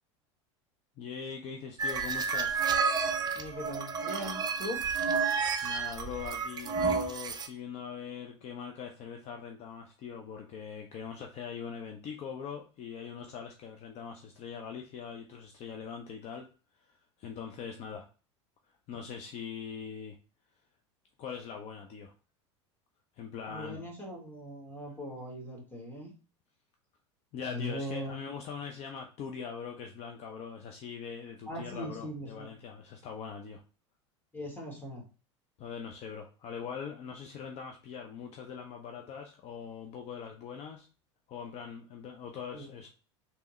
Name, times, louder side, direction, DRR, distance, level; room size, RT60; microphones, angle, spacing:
voice 1, 1.0-2.6 5.6-16.5 16.8-18.1 18.9-20.2 21.2-22.1 23.2-23.8 27.3-33.6 35.6-40.9 41.3-42.9, left 6 dB, 45° left, 3 dB, 0.6 m, -42 dB
sound 1, 1.8-7.5, right 5 dB, 25° right, 0.6 m, -31 dB
voice 2, 3.3-4.8 23.5-26.1 27.5-28.1 31.5-32.5 34.3-35.0 42.5-42.7, equal, 10° left, -2 dB, 1.8 m, -40 dB
3.4 x 3.0 x 3.1 m, 0.35 s
hypercardioid pair, 85°, 15 cm